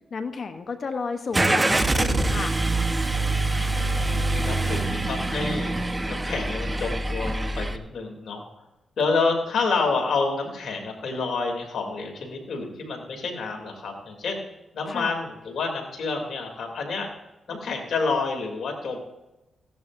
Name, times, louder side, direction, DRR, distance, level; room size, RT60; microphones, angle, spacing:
voice 1, 0.1-2.6 14.9-15.1, left 4 dB, 60° left, 8 dB, 0.9 m, -32 dB
Car / Engine starting, 1.3-7.8, right 2 dB, 25° right, 1.0 m, -25 dB
voice 2, 3.1-5.7 6.1-8.4 9.0-14.4 14.7-17.1 17.5-19.0, left 4 dB, 75° left, 2 dB, 2.8 m, -29 dB
16.5 x 11.0 x 2.6 m, 0.98 s
cardioid pair, 60°, 0 cm